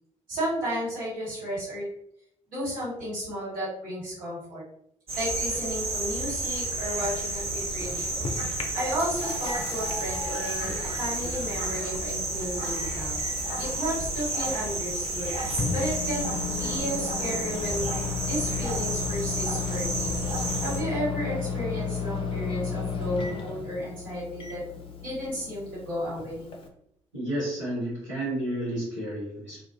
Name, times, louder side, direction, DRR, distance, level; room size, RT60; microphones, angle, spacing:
voice 1, 0.3-1.9 2.5-4.6 5.1-8.3 8.7-13.2 13.6-17.9 18.3-20.2 20.6-24.6 25.0-26.5, equal, 60° right, -8 dB, 1.4 m, -33 dB
sound 1, 5.1-20.8, right 2 dB, 35° right, 0.8 m, -31 dB
Microwave oven, 7.4-26.7, left 5 dB, 35° left, 0.5 m, -35 dB
voice 2, 27.1-29.6, right 1 dB, 85° right, -13 dB, 0.9 m, -31 dB
2.3 x 2.2 x 2.4 m, 0.73 s
figure-of-eight pair, 40°, 16 cm